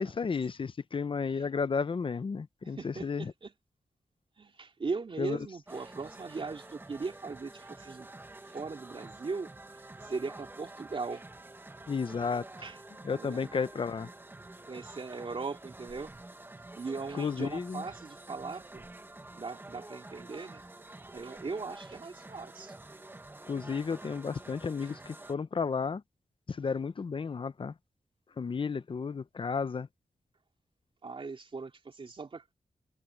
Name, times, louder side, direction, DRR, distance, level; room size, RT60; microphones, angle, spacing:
voice 1, 0.0-3.3 5.2-5.4 11.9-12.4 13.0-14.1 17.1-17.8 23.5-26.0 26.5-27.7 28.4-29.9, left 5 dB, 40° left, 0.7 m, -33 dB
voice 2, 2.6-3.5 4.4-8.1 8.5-9.5 10.0-11.2 12.6-12.8 13.1-13.5 14.7-16.1 16.8-18.9 19.3-20.6 21.1-22.7 31.0-32.4, right 4 dB, 45° right, 3.0 m, -39 dB
sound 1, 5.7-25.3, right 2 dB, 15° right, 1.1 m, -49 dB
wide cardioid pair, 145°, 13 cm